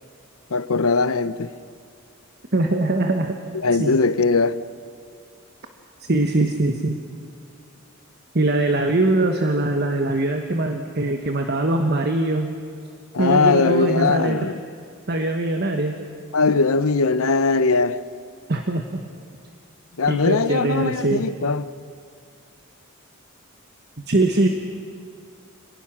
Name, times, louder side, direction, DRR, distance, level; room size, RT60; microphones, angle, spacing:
voice 1, 0.5-1.5 3.5-4.6 13.1-14.6 16.3-18.0 20.0-21.7, left 4 dB, 80° left, 0.8 m, -20 dB
voice 2, 2.5-3.4 3.8-4.0 6.0-7.0 8.3-12.6 13.2-14.4 15.1-16.0 18.5-19.0 20.1-21.2 24.1-24.5, right 2 dB, 50° right, 1.3 m, -22 dB
29.0 x 19.5 x 6.2 m
head